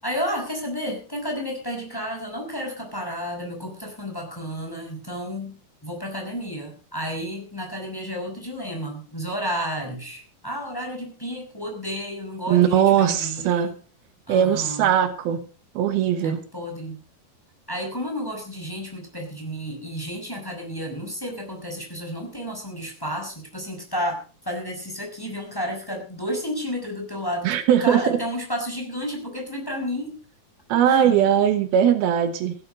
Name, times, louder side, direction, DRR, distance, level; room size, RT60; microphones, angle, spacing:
voice 1, 0.0-13.8 14.3-14.9 16.2-17.0 17.7-27.6 27.8-30.2 30.8-31.3, equal, 5° left, 1 dB, 5.4 m, -31 dB
voice 2, 12.5-13.7 14.3-15.4 15.8-16.4 27.4-28.2 30.7-32.5, right 9 dB, 80° right, 9 dB, 3.1 m, -20 dB
16.0 x 11.5 x 5.2 m, 0.38 s
omnidirectional pair, 4.4 m